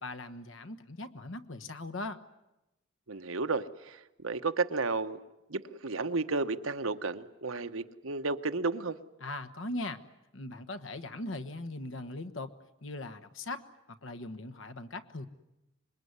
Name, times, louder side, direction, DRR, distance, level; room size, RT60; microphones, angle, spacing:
voice 1, 0.0-2.2 9.2-10.0 10.3-12.5 12.8-13.6 14.0-15.3, left 2 dB, 75° left, 11 dB, 1.3 m, -39 dB
voice 2, 3.1-5.2 5.5-9.0, right 3 dB, 90° right, 10 dB, 1.1 m, -32 dB
26.0 x 21.5 x 9.6 m, 0.95 s
head